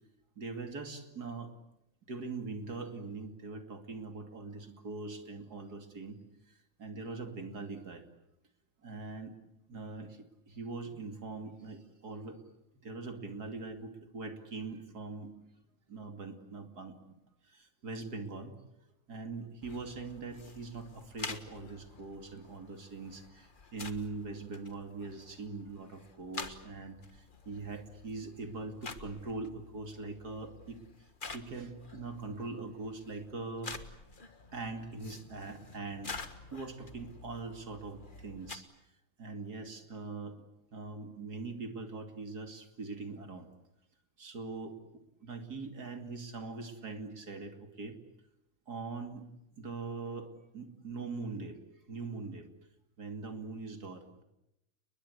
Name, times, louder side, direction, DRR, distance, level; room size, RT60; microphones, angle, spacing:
voice 1, 0.4-1.6 2.1-6.2 6.5-8.1 8.8-9.3 9.7-12.4 12.7-15.3 15.9-16.9 17.4-18.6 19.1-30.8 31.3-34.0 34.5-36.1 36.5-38.9 39.2-40.4 40.7-43.5 44.2-44.8 45.2-48.0 48.7-49.3 49.6-51.6 51.9-52.5 53.0-54.2, right 3 dB, 35° right, 6 dB, 2.9 m, -42 dB
sound 1, 19.6-38.6, left 4 dB, 35° left, 0.7 m, -48 dB
30.0 x 21.5 x 8.1 m, 0.86 s
omnidirectional pair, 3.3 m